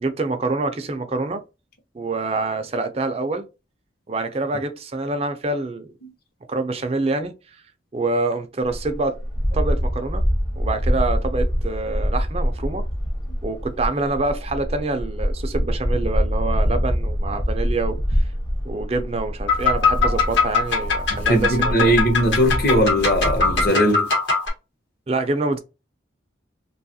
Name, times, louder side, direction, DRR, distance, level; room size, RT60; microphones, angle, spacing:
voice 1, 0.0-1.4 1.9-3.5 4.1-5.9 6.5-7.3 7.9-9.2 9.5-10.2 10.6-12.9 13.4-18.2 18.7-21.9 25.1-25.6, right 3 dB, 35° right, 0.4 m, -26 dB
sound 1, 8.6-23.7, equal, 20° left, 0.7 m, -25 dB
sound 2, 19.5-24.5, left 4 dB, 75° left, 1.1 m, -22 dB
voice 2, 21.1-24.1, equal, 50° left, 0.8 m, -19 dB
2.8 x 2.3 x 2.7 m
head